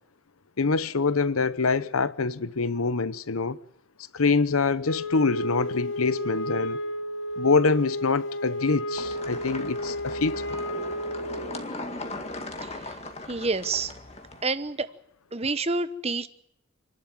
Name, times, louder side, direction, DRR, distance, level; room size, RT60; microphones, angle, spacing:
voice 1, 0.6-3.6 4.1-6.8 7.4-10.4, left 4 dB, 85° left, 0.9 m, -25 dB
Wind instrument woodwind instrument, 4.8-11.6, equal, 60° left, 1.2 m, -32 dB
sound 1, 9.0-14.4, left 2 dB, 30° left, 2.0 m, -38 dB
voice 2, 13.3-13.9 14.4-14.9 15.3-16.3, right 3 dB, 30° right, 0.9 m, -28 dB
28.0 x 12.0 x 9.4 m
head